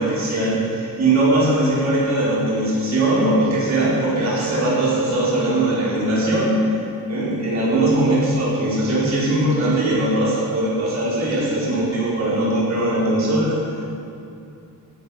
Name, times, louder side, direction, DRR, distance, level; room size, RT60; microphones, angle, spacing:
voice 1, 0.0-6.8 7.1-13.7, right 1 dB, 55° right, -8 dB, 4.7 m, -20 dB
16.0 x 14.0 x 5.2 m, 2.6 s
wide cardioid pair, 175°, 33 cm